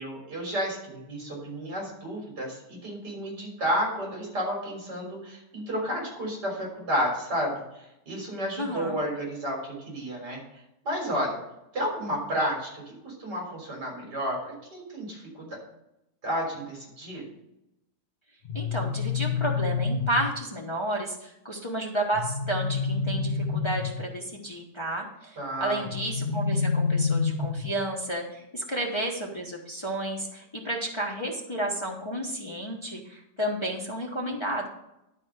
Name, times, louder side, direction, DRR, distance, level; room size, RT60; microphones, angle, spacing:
voice 1, 0.0-10.4 10.8-11.4 11.7-14.4 14.7-15.6 16.2-17.3 25.4-25.8, equal, 60° right, -1 dB, 4.2 m, -31 dB
voice 2, 8.6-9.0 18.5-34.7, right 1 dB, 20° left, -1 dB, 1.0 m, -32 dB
sound 1, 18.4-20.4 22.1-24.1 25.9-27.8, left 5 dB, 40° left, 1.6 m, -28 dB
11.5 x 4.3 x 6.5 m, 0.86 s
omnidirectional pair, 2.0 m